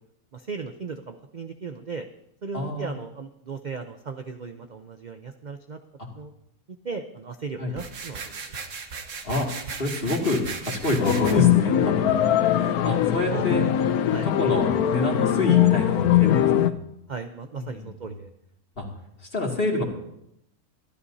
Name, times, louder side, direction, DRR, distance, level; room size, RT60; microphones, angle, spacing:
voice 1, 0.3-2.1 2.4-5.8 6.1-6.3 6.8-8.5 13.3-13.4 14.1-14.3 17.1-18.3, right 5 dB, 45° right, 6 dB, 0.6 m, -36 dB
voice 2, 2.5-2.9 7.6-7.7 9.2-9.5 9.8-12.1 12.4-13.6 14.2-16.8 17.6-17.9 18.8-18.9 19.3-19.8, left 2 dB, 40° left, -1 dB, 2.7 m, -27 dB
sound 1, 7.7-11.3, right 5 dB, 60° right, 1.5 m, -36 dB
sound 2, 11.0-16.7, left 11 dB, 85° left, 1.2 m, -21 dB
25.0 x 13.0 x 2.8 m, 0.80 s
omnidirectional pair, 1.5 m